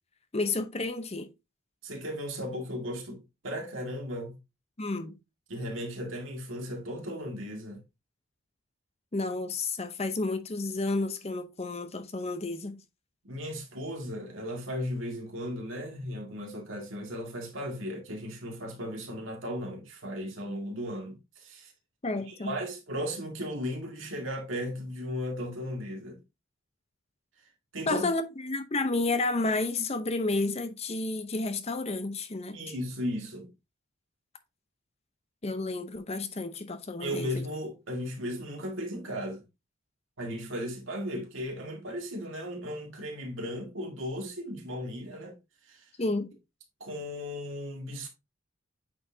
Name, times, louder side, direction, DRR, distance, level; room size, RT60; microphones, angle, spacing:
voice 1, 0.3-1.3 4.8-5.1 9.1-12.8 22.0-22.6 27.9-32.6 35.4-37.4 46.0-46.3, left 2 dB, 30° left, 0.7 m, -31 dB
voice 2, 1.8-4.4 5.5-7.8 13.2-21.7 22.1-26.2 27.7-28.1 32.5-33.5 37.0-39.4 40.2-45.3 45.7-45.9 46.8-48.1, equal, 70° right, 2.0 m, -36 dB
8.6 x 4.3 x 2.7 m
head